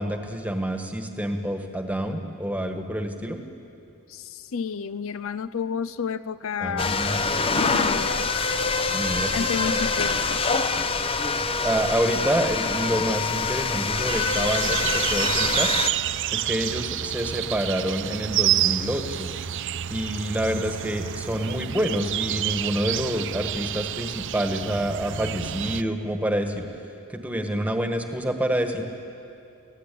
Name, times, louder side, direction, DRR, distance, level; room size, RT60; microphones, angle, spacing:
voice 1, 0.0-3.4 6.6-7.6 8.9-9.8 11.6-15.7 16.3-19.3 19.9-26.7 27.1-28.8, right 1 dB, 5° right, 5 dB, 1.5 m, -27 dB
voice 2, 4.1-7.0 7.5-8.3 9.3-10.4 10.8-10.9, left 6 dB, 65° left, 15 dB, 0.5 m, -31 dB
sound 1, 6.8-15.9, left 4 dB, 25° left, 0.7 m, -25 dB
sound 2, 14.0-25.8, right 12 dB, 55° right, 0.5 m, -29 dB
29.5 x 16.0 x 8.5 m, 2.7 s
head